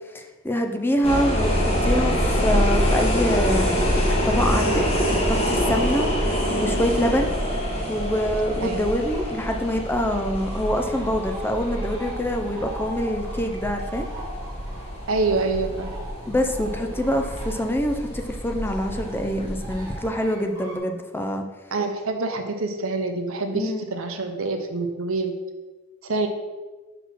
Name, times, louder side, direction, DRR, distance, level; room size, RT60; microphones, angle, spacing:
voice 1, 0.1-4.8 5.2-7.3 7.9-14.1 16.3-21.4 23.5-23.8, equal, 10° left, 5 dB, 0.4 m, -25 dB
Subway in Washington DC from inside, 1.0-20.0, equal, 30° left, 1.5 m, -26 dB
sound 1, 7.4-7.9 8.3-9.3 9.6-9.7 10.0-20.8, right 2 dB, 15° right, 1.5 m, -42 dB
voice 2, 15.1-15.9 21.7-25.3 26.0-26.3, right 3 dB, 70° right, 6 dB, 0.8 m, -26 dB
5.8 x 4.2 x 5.5 m, 1.3 s
head